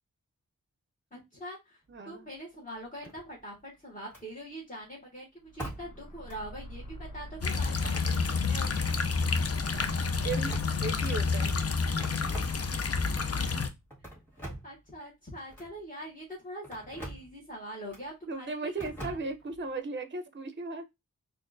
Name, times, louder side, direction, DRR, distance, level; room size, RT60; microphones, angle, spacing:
voice 1, 1.1-1.8 2.0-9.0 14.3-19.2, equal, 25° left, 1.6 m, -43 dB
voice 2, 1.9-2.3 10.2-10.5 10.8-11.5 18.3-20.8, right 3 dB, 35° right, 0.6 m, -36 dB
sound 1, 3.0-3.6 4.1-4.3 5.6-6.0 6.3-6.4 7.7-8.3 8.6-8.8 9.6-11.1 12.0-13.0 13.9-14.8 15.5-15.7 16.6-17.3 17.9-18.1 18.8-19.6, right 1 dB, 5° left, 1.8 m, -43 dB
sound 2, 5.4-13.8, equal, 80° left, 0.9 m, -48 dB
sound 3, 7.4-13.7, left 4 dB, 50° left, 0.5 m, -29 dB
4.1 x 2.6 x 2.5 m
wide cardioid pair, 65°, 32 cm